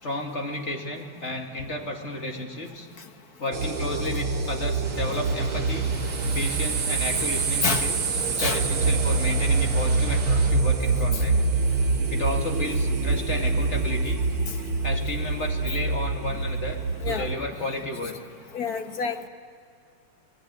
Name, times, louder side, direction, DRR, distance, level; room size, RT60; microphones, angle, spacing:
voice 1, 0.0-2.9 3.4-5.9 6.3-11.4 11.8-14.2 14.8-16.8 17.1-18.1, left 2 dB, 30° left, 2 dB, 2.6 m, -32 dB
sound 1, 3.5-17.4, right 4 dB, 90° right, 3.2 m, -25 dB
sound 2, 4.8-10.5, right 2 dB, 30° right, 2.7 m, -39 dB
voice 2, 18.5-19.3, left 5 dB, 50° left, 6 dB, 1.5 m, -27 dB
27.5 x 20.0 x 9.5 m, 2.1 s
omnidirectional pair, 2.4 m